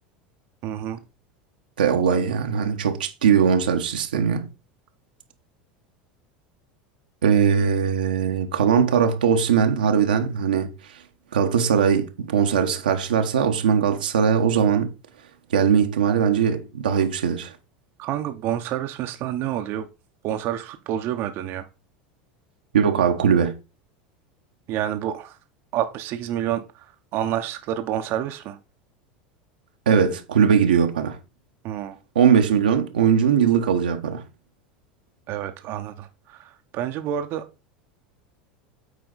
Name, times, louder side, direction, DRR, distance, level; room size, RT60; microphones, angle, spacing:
voice 1, 0.6-1.0 18.0-19.9 20.2-21.7 24.7-25.4 25.7-28.6 31.6-32.0 35.3-37.5, right 11 dB, 55° right, 0.8 m, -28 dB
voice 2, 1.8-4.5 7.2-10.7 11.3-14.9 15.5-17.5 22.7-23.5 29.9-31.2 32.1-34.2, right 7 dB, 90° right, 1.0 m, -20 dB
8.2 x 4.2 x 4.0 m
hypercardioid pair, 95°, 5 cm